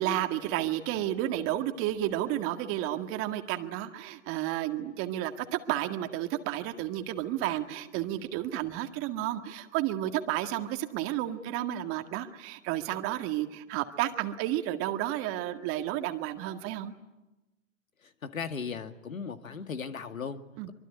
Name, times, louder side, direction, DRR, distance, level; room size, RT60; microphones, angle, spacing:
voice 1, 0.0-16.9 20.6-20.7, right 13 dB, 35° right, 6 dB, 1.9 m, -31 dB
voice 2, 18.0-20.7, left 6 dB, 80° left, 8 dB, 2.2 m, -37 dB
24.5 x 23.5 x 10.0 m, 1.0 s
hypercardioid pair, 120°, 40 cm